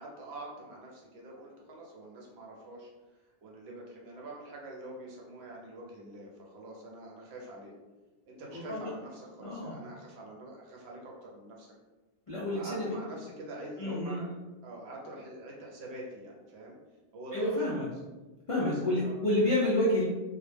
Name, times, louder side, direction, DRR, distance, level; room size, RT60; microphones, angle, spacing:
voice 1, 0.0-2.9 3.4-7.7 8.3-11.7 12.5-14.3 14.6-16.8 17.1-17.6 18.5-18.7 19.0-19.1, right 1 dB, 70° right, -2 dB, 0.9 m, -45 dB
voice 2, 8.5-8.9 9.4-9.8 12.3-12.9 13.8-14.2 17.3-17.9 18.5-20.0, left 1 dB, 55° left, -7 dB, 0.3 m, -29 dB
2.2 x 2.1 x 3.2 m, 1.2 s
omnidirectional pair, 1.1 m